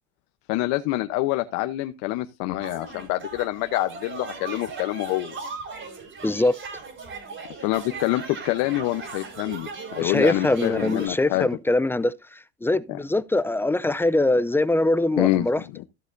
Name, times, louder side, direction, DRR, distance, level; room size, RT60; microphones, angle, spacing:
voice 1, 0.5-5.3 7.6-11.5 15.2-15.9, left 17 dB, 70° left, 0.9 m, -26 dB
sound 1, 2.6-11.1, right 4 dB, 40° right, 5.0 m, -38 dB
voice 2, 6.2-6.5 10.0-12.1 12.6-15.6, left 2 dB, 5° left, 0.5 m, -22 dB
14.5 x 8.3 x 2.7 m
supercardioid pair, 110°, 31 cm